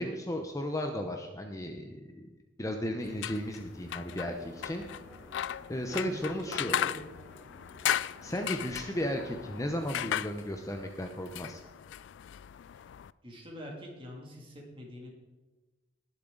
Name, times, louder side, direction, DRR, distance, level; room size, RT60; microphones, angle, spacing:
voice 1, 0.0-2.3 2.6-4.8 5.7-6.8 8.2-11.6, equal, 15° left, 4 dB, 0.7 m, -35 dB
sound 1, 3.0-13.1, left 11 dB, 70° left, 0.3 m, -37 dB
sound 2, 3.6-10.5, right 1 dB, 10° right, 4.0 m, -56 dB
voice 2, 5.9-7.0 13.2-15.1, equal, 30° right, -1 dB, 2.6 m, -44 dB
19.5 x 7.2 x 3.9 m, 1.2 s
head